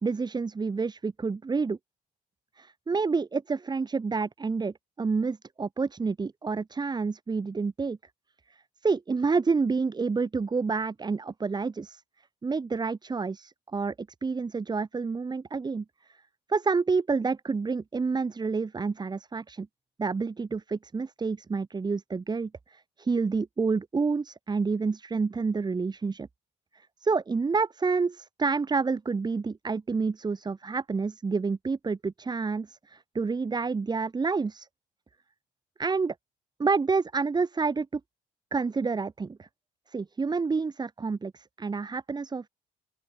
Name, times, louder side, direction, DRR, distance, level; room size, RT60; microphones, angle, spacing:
voice 1, 0.0-1.8 2.6-8.0 8.8-12.0 12.4-15.8 16.5-19.7 20.0-26.3 27.0-34.7 35.8-36.1 36.6-38.0 38.5-39.5 39.9-42.5, right 4 dB, 25° right, 4.0 m, -29 dB
open air
cardioid pair, 110°, 17 cm